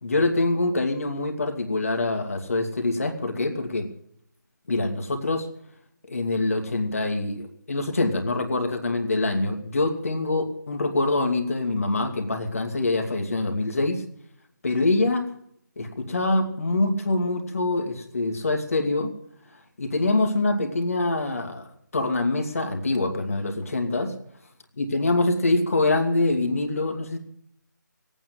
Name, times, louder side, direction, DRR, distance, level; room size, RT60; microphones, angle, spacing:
voice 1, 0.0-3.9 4.7-5.5 6.1-14.0 14.6-15.3 15.8-19.1 19.8-21.7 21.9-24.1 24.8-27.2, left 2 dB, 50° left, 3 dB, 2.5 m, -25 dB
19.5 x 9.3 x 7.8 m, 0.68 s
figure-of-eight pair, 155°, 10 cm